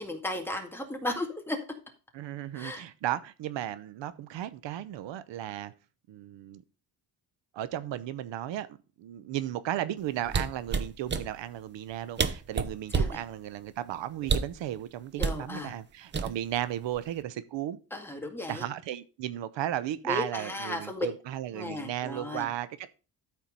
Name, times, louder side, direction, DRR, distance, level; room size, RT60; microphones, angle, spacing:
voice 1, 0.0-1.6 2.5-2.8 12.9-13.2 15.2-15.7 17.9-18.7 20.0-21.1 21.5-22.5, left 1 dB, 5° left, 3 dB, 1.9 m, -35 dB
voice 2, 2.1-5.7 6.1-6.6 7.5-8.7 9.0-17.8 18.5-22.9, right 12 dB, 80° right, 14 dB, 0.9 m, -35 dB
sound 1, 10.3-11.3 11.9-12.0 12.2-13.2 14.2-14.6 15.2-15.4 16.1-16.6 16.9-17.2, right 5 dB, 25° right, 0.8 m, -28 dB
13.0 x 4.6 x 5.3 m, 0.33 s
cardioid pair, 140°, 43 cm